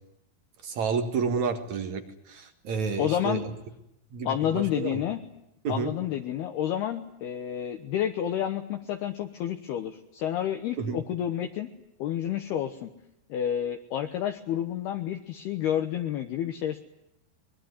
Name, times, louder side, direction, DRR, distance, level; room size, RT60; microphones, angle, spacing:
voice 1, 0.6-3.5 4.1-5.0 5.6-5.9 10.8-11.0, right 5 dB, 55° right, 8 dB, 2.1 m, -30 dB
voice 2, 3.0-3.5 4.3-5.2 5.7-11.7 12.0-12.9 13.3-16.8, left 10 dB, 70° left, 6 dB, 2.7 m, -30 dB
23.5 x 21.5 x 9.6 m, 0.85 s
omnidirectional pair, 5.5 m